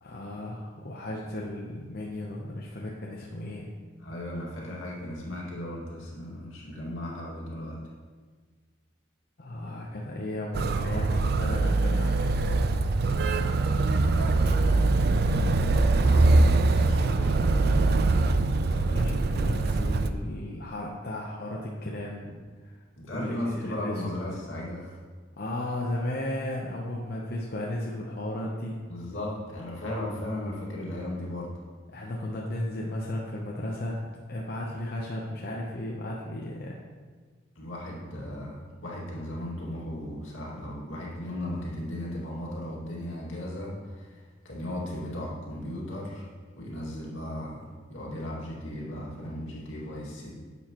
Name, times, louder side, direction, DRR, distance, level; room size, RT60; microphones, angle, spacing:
voice 1, 0.0-3.7 9.4-12.3 18.6-22.4 22.6-22.7 23.1-24.2 25.4-28.8 31.9-34.0 34.3-36.8, left 1 dB, 50° left, -3 dB, 0.8 m, -35 dB
voice 2, 4.0-7.8 13.9-18.2 23.0-25.0 28.9-31.5 37.6-46.3 46.6-50.3, left 1 dB, 80° left, -4 dB, 2.1 m, -36 dB
Motor vehicle (road), 10.5-20.1, right 3 dB, 50° right, 0.4 m, -23 dB
10.0 x 7.1 x 3.0 m, 1.5 s
head